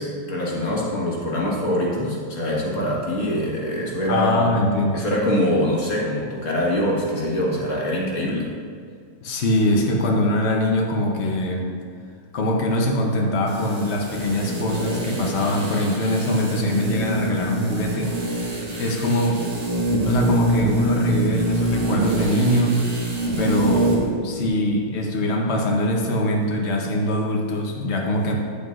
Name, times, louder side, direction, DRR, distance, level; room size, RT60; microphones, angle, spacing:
voice 1, 0.0-4.5 4.9-8.5, left 1 dB, 40° left, -4 dB, 1.7 m, -24 dB
voice 2, 4.1-5.0 9.2-11.7 12.3-18.1 18.8-19.4 20.0-22.8 23.4-24.0 24.2-28.3, left 1 dB, 70° left, 0 dB, 0.6 m, -22 dB
sound 1, 13.5-24.1 24.4-24.5, right 1 dB, 65° right, 0.3 m, -25 dB
9.3 x 8.6 x 2.5 m, 2.2 s
omnidirectional pair, 2.3 m